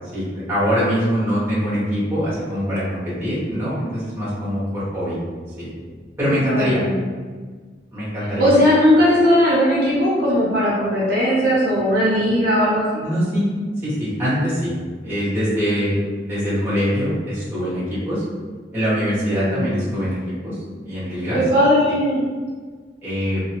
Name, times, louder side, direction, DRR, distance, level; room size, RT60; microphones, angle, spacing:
voice 1, 0.1-5.2 5.6-5.7 6.2-6.8 7.9-8.5 13.0-13.5 13.8-14.7 15.0-18.2 18.7-20.6 20.8-21.4 23.0-23.4, equal, 15° right, -10 dB, 1.4 m, -23 dB
voice 2, 6.3-7.0 8.4-12.8 19.3-19.8 21.3-22.2, equal, 55° right, -7 dB, 0.7 m, -18 dB
2.7 x 2.6 x 2.9 m, 1.5 s
head